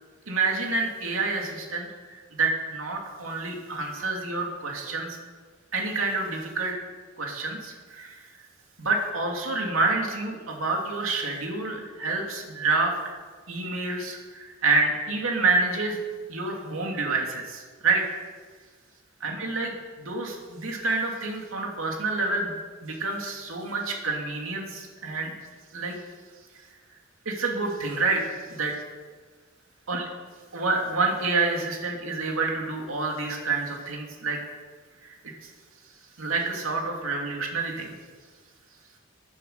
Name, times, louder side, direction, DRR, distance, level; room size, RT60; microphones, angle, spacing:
voice 1, 0.3-1.9 2.4-5.1 5.7-6.8 7.2-8.2 8.8-12.9 13.5-16.0 16.3-18.0 19.2-22.5 22.8-25.3 25.7-26.0 27.3-28.7 29.9-30.0 30.5-34.4 35.0-35.1 36.2-37.9, right 3 dB, 80° right, 1 dB, 2.6 m, -28 dB
14.5 x 9.8 x 6.7 m, 1.5 s
head